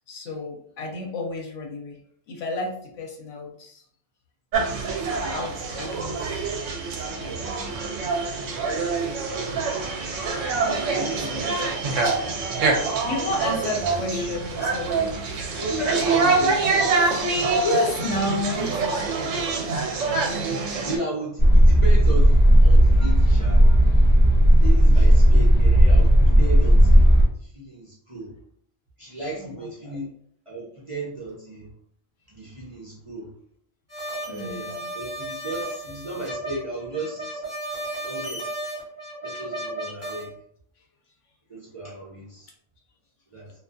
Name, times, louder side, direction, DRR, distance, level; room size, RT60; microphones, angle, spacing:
voice 1, 0.1-2.0 2.3-3.8 5.3-6.2 7.2-7.5 13.0-15.1 17.6-18.7 29.4-29.5 29.8-30.0 34.3-34.9, left 2 dB, 80° left, 1 dB, 1.0 m, -31 dB
sound 1, 4.5-21.0, right 4 dB, 75° right, 0.9 m, -25 dB
voice 2, 10.9-12.0 15.6-17.2 18.6-18.7 19.2-19.6 20.8-23.7 24.6-27.1 27.4-28.3 29.0-30.1 30.5-31.7 32.3-33.3 34.3-34.7 34.9-37.4 38.0-38.8 39.2-40.3 41.5-42.5 43.3-43.5, right 1 dB, 35° right, -7 dB, 0.5 m, -35 dB
sound 2, 21.4-27.2, equal, 30° left, 0.7 m, -14 dB
sound 3, 33.9-40.3, right 1 dB, 15° right, 1.0 m, -34 dB
2.4 x 2.3 x 2.5 m, 0.64 s
omnidirectional pair, 1.3 m